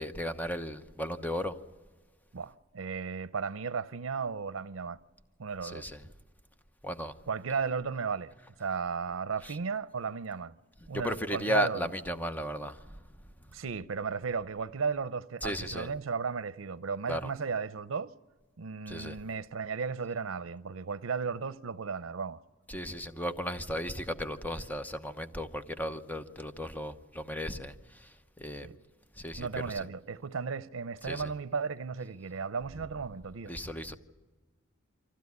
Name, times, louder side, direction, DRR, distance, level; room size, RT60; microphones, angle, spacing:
voice 1, 0.0-1.6 5.6-6.0 6.8-7.1 9.4-9.6 10.9-13.0 15.4-15.9 17.1-17.2 18.9-19.2 22.7-28.7 29.2-29.5 29.7-29.9 31.0-31.3 33.5-34.0, equal, 10° left, 0.9 m, -35 dB
voice 2, 2.3-5.0 5.4-5.9 7.3-8.3 8.6-10.5 10.9-11.9 13.5-18.1 18.6-22.4 28.6-28.8 29.4-33.5, right 5 dB, 85° right, 0.6 m, -35 dB
25.0 x 15.0 x 9.5 m
head